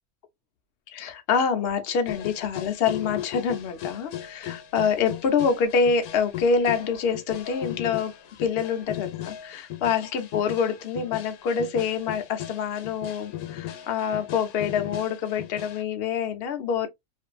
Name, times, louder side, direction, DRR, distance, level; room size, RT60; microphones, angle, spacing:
voice 1, 0.9-8.1 8.4-16.9, left 6 dB, 65° left, 0.6 m, -26 dB
sound 1, 2.1-15.8, left 12 dB, 90° left, 1.1 m, -37 dB
2.6 x 2.5 x 2.2 m
omnidirectional pair, 1.5 m